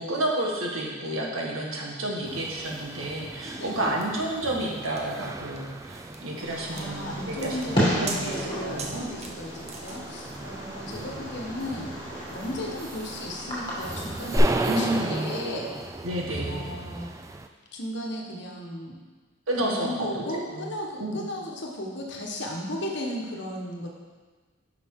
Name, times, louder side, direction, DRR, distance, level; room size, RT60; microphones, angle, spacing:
voice 1, 0.0-9.0 10.7-10.8 14.6-15.3 16.0-16.6 19.5-20.2 20.5-20.7 21.0-21.3, right 1 dB, 90° right, -1 dB, 1.5 m, -30 dB
sound 1, 2.3-17.5, right 2 dB, 15° right, 0.3 m, -37 dB
voice 2, 3.5-4.0 6.7-12.0 12.3-15.7 16.5-17.1 17.7-19.0 19.6-23.9, left 1 dB, 55° left, 0 dB, 1.3 m, -35 dB
sound 2, 4.0-10.3, right 3 dB, 30° right, 0.8 m, -41 dB
Fireworks, 6.4-14.4, equal, 25° left, 2.4 m, -33 dB
10.5 x 5.7 x 3.7 m, 1.4 s
head